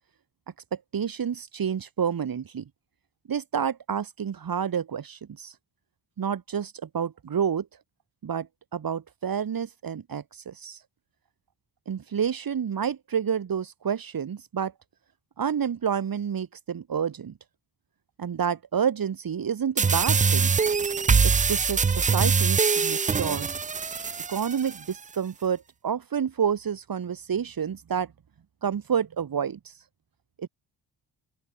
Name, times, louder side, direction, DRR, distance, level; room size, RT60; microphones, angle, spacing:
voice 1, 0.7-2.6 3.3-5.5 6.2-7.7 8.2-10.8 11.9-14.7 15.4-17.3 18.2-20.5 21.2-23.5 24.3-28.1 28.6-29.7 30.4-30.5, right 7 dB, 50° right, 3.5 m, -29 dB
sound 1, 19.8-24.8, right 5 dB, 20° right, 0.4 m, -23 dB
open air
cardioid pair, 120°, 44 cm